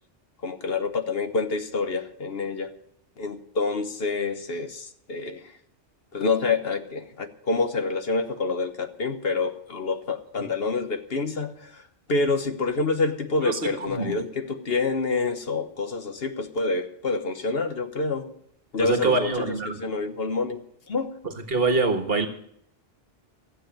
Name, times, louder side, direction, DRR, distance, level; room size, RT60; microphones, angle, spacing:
voice 1, 0.4-2.7 3.2-5.5 6.1-11.8 12.1-18.3 18.7-20.6 20.9-21.1, left 3 dB, 55° left, 8 dB, 1.3 m, -27 dB
voice 2, 13.4-14.2 18.8-19.8 21.5-22.3, right 3 dB, 55° right, 6 dB, 1.7 m, -24 dB
14.5 x 7.7 x 8.9 m, 0.70 s
omnidirectional pair, 1.2 m